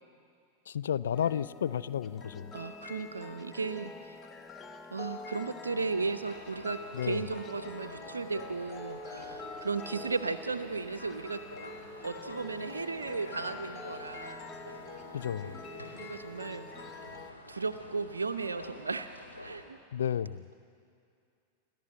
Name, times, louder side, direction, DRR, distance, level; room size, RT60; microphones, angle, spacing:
voice 1, 0.7-2.5 6.9-7.2 15.1-15.6 19.9-20.5, left 9 dB, 65° left, 14 dB, 0.4 m, -32 dB
sound 1, 1.1-17.3, left 3 dB, 20° left, 0.9 m, -46 dB
voice 2, 2.5-4.2 4.9-11.4 12.0-14.4 15.9-16.7 17.5-19.1 19.4-19.8, right 4 dB, 75° right, 7 dB, 0.6 m, -35 dB
sound 2, 5.9-19.6, left 1 dB, 85° left, 2.5 m, -48 dB
28.5 x 12.5 x 7.7 m, 2.4 s
figure-of-eight pair, 90°, 0 cm